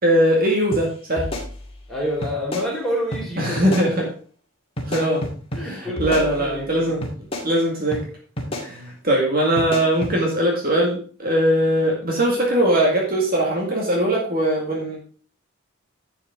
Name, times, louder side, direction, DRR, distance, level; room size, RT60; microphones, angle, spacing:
voice 1, 0.0-1.3 3.4-4.1 4.9-5.2 5.6-7.0 7.4-8.0 8.6-15.0, right 1 dB, 45° right, -1 dB, 2.2 m, -20 dB
sound 1, 0.7-0.8 1.2-1.9 2.2-2.7 3.1-3.2 3.6-3.9 4.8-5.6 6.0-6.7 7.0-7.5 7.9-8.0 8.4-8.7 9.6-10.1, equal, 25° left, 2.1 m, -29 dB
voice 2, 1.9-4.0 5.5-6.8 8.7-8.9, equal, ahead, -5 dB, 4.1 m, -28 dB
11.0 x 7.3 x 3.7 m, 0.41 s
head